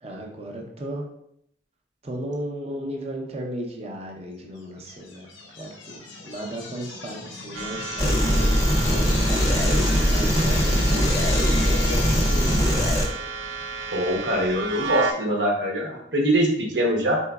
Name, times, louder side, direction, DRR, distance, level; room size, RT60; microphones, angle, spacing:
voice 1, 0.0-1.0 2.0-5.3 5.6-12.9, right 1 dB, 35° right, 0 dB, 0.7 m, -35 dB
sound 1, 4.8-12.6, left 3 dB, 85° left, 0.8 m, -34 dB
sound 2, 7.5-15.1, right 5 dB, 85° right, 0.6 m, -33 dB
sound 3, 8.0-13.1, equal, 20° left, 0.6 m, -21 dB
voice 2, 13.9-17.2, right 1 dB, 70° right, 0 dB, 0.9 m, -23 dB
4.5 x 3.9 x 2.3 m, 0.73 s
head